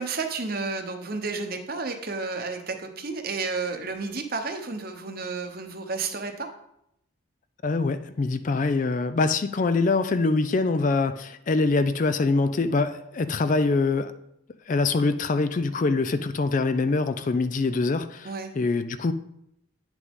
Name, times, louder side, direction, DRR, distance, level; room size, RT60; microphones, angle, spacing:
voice 1, 0.0-6.5 18.2-18.5, right 4 dB, 45° right, 6 dB, 0.9 m, -31 dB
voice 2, 7.6-14.1 14.7-19.1, left 3 dB, 40° left, 11 dB, 0.3 m, -24 dB
9.5 x 6.1 x 3.6 m, 0.79 s
head